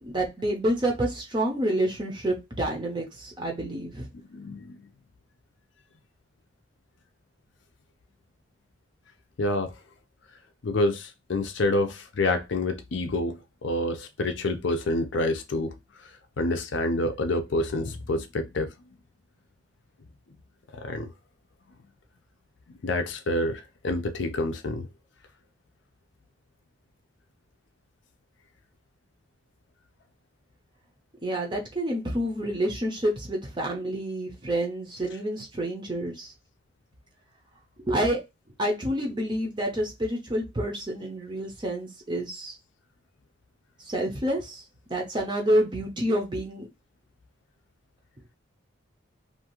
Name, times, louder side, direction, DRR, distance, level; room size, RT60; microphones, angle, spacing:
voice 1, 0.0-4.1 31.2-36.3 37.9-38.2 38.6-42.6 43.8-46.7, right 1 dB, 25° right, 0.6 m, -28 dB
voice 2, 4.3-4.8 9.4-9.7 10.6-15.7 16.4-18.7 20.7-21.1 22.7-24.9, left 2 dB, 65° left, 0.5 m, -28 dB
2.7 x 2.4 x 2.9 m
head